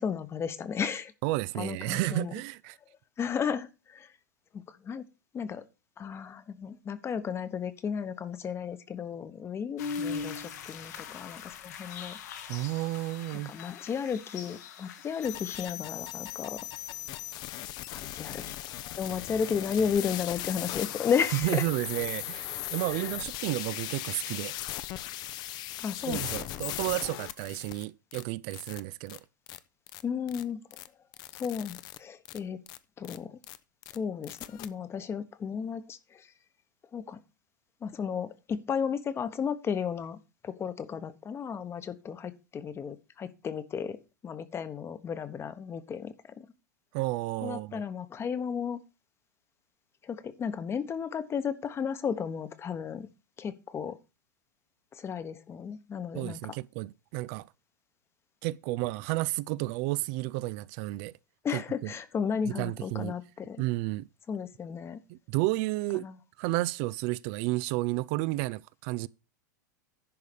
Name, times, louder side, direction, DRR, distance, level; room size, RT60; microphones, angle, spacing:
voice 1, 0.0-1.1 1.6-2.3 3.2-4.1 4.5-5.0 5.3-5.6 6.0-12.2 12.5-12.7 13.4-16.6 17.5-18.5 18.9-21.6 22.9-23.1 25.8-26.2 30.0-30.6 31.3-32.6 33.0-33.4 33.9-36.3 36.9-37.2 37.8-40.2 40.4-44.0 44.2-46.5 47.4-48.8 50.0-53.1 53.4-54.0 54.9-56.5 61.4-63.6 64.3-65.0 65.9-66.1, left 7 dB, 25° left, 1.2 m, -34 dB
voice 2, 1.2-2.8 12.5-13.5 21.3-24.5 26.1-29.2 46.9-47.8 56.1-57.5 58.4-61.1 61.5-61.9 62.5-63.2 63.6-64.1 65.1-66.1 66.4-69.1, right 19 dB, 50° right, 0.5 m, -32 dB
sound 1, 9.8-15.7, left 5 dB, 65° left, 1.7 m, -40 dB
sound 2, 15.2-27.8 28.1-28.2 28.5-28.8 29.1-29.2 29.5-29.6 29.9-30.0 30.3-30.4 30.7-30.9 31.1-32.0 32.3-32.4 32.7-32.8 33.0-33.2 33.4-33.6 33.8-34.0 34.2-34.7, left 14 dB, 45° left, 0.8 m, -38 dB
10.5 x 4.8 x 6.9 m
hypercardioid pair, 100°, 10 cm